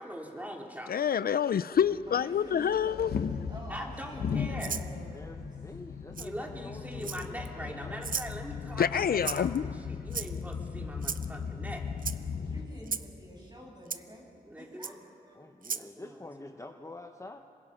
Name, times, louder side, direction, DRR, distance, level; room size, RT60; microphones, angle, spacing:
voice 1, 0.0-0.9 3.7-4.8 6.2-11.8 13.4-13.5 14.4-15.0 15.7-16.5, equal, 10° right, 0 dB, 3.3 m, -42 dB
voice 2, 0.9-3.1 8.8-9.7, left 8 dB, 75° left, 16 dB, 0.4 m, -27 dB
sound 1, 1.8-12.7, left 6 dB, 90° left, 0.8 m, -37 dB
voice 3, 2.1-5.5 12.2-14.3 14.6-15.5, equal, 25° right, -1 dB, 6.4 m, -48 dB
Rattle (instrument), 4.6-4.9 6.1-6.3 7.0-7.5 8.0-8.3 9.2-9.6 10.1-10.5 11.0-11.3 12.0-12.2 12.9-13.1 13.9-14.0 14.8-14.9 15.6-15.9, right 6 dB, 60° right, 0.7 m, -35 dB
voice 4, 5.1-8.0 15.3-17.4, left 2 dB, 20° left, 6 dB, 0.9 m, -47 dB
26.0 x 23.0 x 5.6 m, 2.4 s
wide cardioid pair, 80°, 16 cm